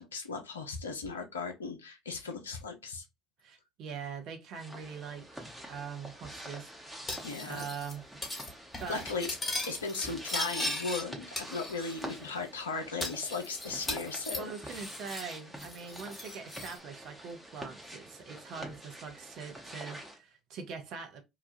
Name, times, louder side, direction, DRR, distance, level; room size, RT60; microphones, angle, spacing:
voice 1, 0.0-3.0 7.2-7.7 8.9-9.3 9.7-14.8, left 4 dB, 80° left, 0.5 m, -37 dB
voice 2, 3.4-8.0 8.8-9.0 14.3-21.2, right 6 dB, 55° right, 0.7 m, -43 dB
sound 1, 4.5-20.2, right 1 dB, 5° right, 1.0 m, -47 dB
Cutlery silverware, 7.1-7.9 8.2-8.5 8.7-11.0 11.4-12.1 12.4-12.5 13.0-15.3 15.6-16.8, left 2 dB, 25° left, 1.5 m, -38 dB
2.9 x 2.3 x 2.5 m
figure-of-eight pair, 60°, 0 cm